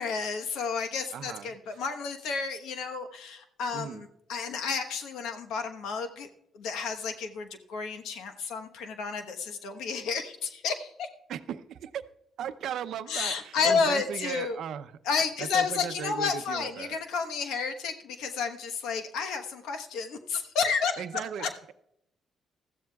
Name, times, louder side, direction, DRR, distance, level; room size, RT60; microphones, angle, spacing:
voice 1, 0.0-6.3 6.5-11.1 13.1-14.6 15.0-21.5, left 5 dB, 85° left, 6 dB, 1.1 m, -31 dB
voice 2, 1.1-1.5 3.7-4.0 11.3-12.0 12.4-14.9 15.4-17.0 21.0-21.7, right 9 dB, 75° right, 12 dB, 0.6 m, -37 dB
20.0 x 14.0 x 2.3 m, 0.78 s
cardioid pair, 90°, 0 cm